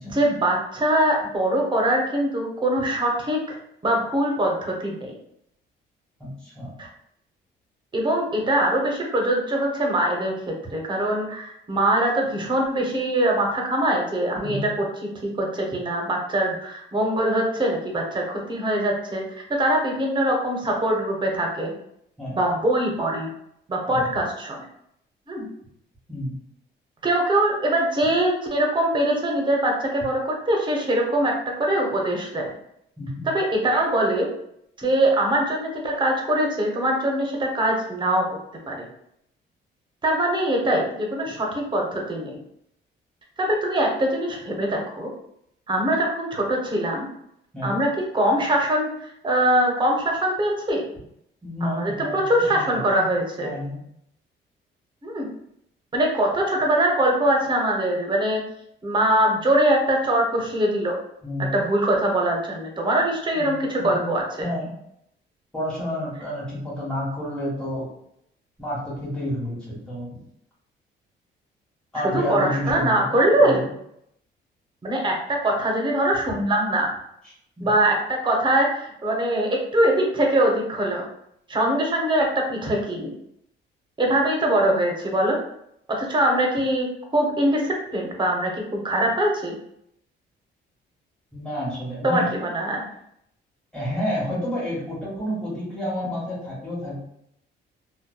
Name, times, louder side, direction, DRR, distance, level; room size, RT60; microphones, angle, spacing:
voice 1, 0.1-3.6 3.8-5.2 6.8-6.9 7.9-10.3 10.7-14.8 15.2-21.7 22.4-23.3 23.7-24.6 25.3-25.5 27.0-32.5 33.2-34.3 34.8-38.2 38.7-38.9 40.0-42.4 43.4-45.1 45.7-47.1 47.6-50.8 51.6-53.5 55.0-55.3 55.9-58.4 58.8-61.0 61.5-64.5 72.0-73.7 74.8-76.9 77.6-81.0 81.5-83.1 84.0-85.4 85.9-86.9 87.1-89.5 92.0-92.8, right 1 dB, 25° right, 0 dB, 0.7 m, -22 dB
voice 2, 6.2-6.7 14.4-14.6 22.2-22.4 23.9-24.1 26.1-26.3 33.0-33.3 47.5-47.8 51.4-52.2 52.5-52.8 53.4-53.8 61.2-61.5 63.3-64.1 64.4-64.7 65.5-67.9 68.6-70.1 71.9-73.7 77.6-77.7 91.3-92.3 93.7-97.0, equal, 5° left, -7 dB, 1.3 m, -30 dB
2.6 x 2.2 x 2.2 m, 0.74 s
cardioid pair, 90°, 20 cm